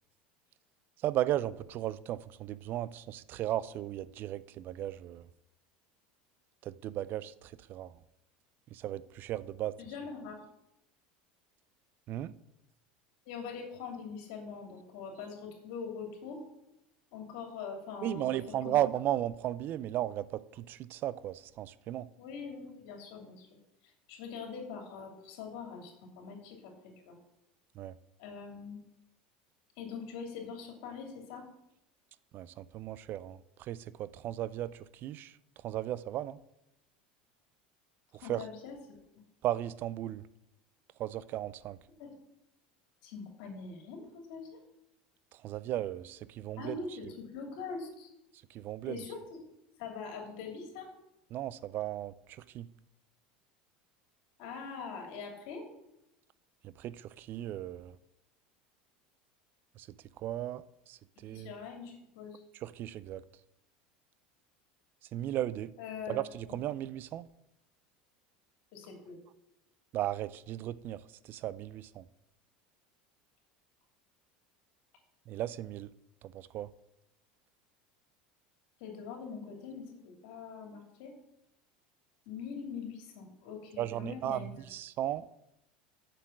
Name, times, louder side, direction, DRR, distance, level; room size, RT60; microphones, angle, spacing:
voice 1, 1.0-5.3 6.6-7.9 8.7-9.7 12.1-12.3 18.0-22.1 27.8-27.9 32.3-35.4 35.6-36.4 38.1-38.4 39.4-40.3 41.0-41.8 45.3-46.8 48.5-49.0 51.3-52.7 56.6-58.0 59.8-59.9 60.2-61.5 62.6-63.2 65.1-65.7 66.1-67.3 69.9-72.1 75.3-75.9 76.2-76.7 83.8-85.3, right 13 dB, 50° right, 0.4 m, -36 dB
voice 2, 9.8-10.4 13.3-16.4 17.1-18.4 18.6-18.8 22.2-23.5 23.8-27.2 28.2-28.8 29.8-31.4 38.2-38.7 42.0-42.2 43.0-44.6 46.6-48.1 48.8-49.4 49.8-50.9 54.4-55.7 61.3-62.4 65.8-66.2 68.7-69.2 78.8-81.1 82.3-84.6, left 5 dB, 70° left, 2.8 m, -43 dB
7.4 x 6.8 x 7.4 m
hypercardioid pair, 90°, 4 cm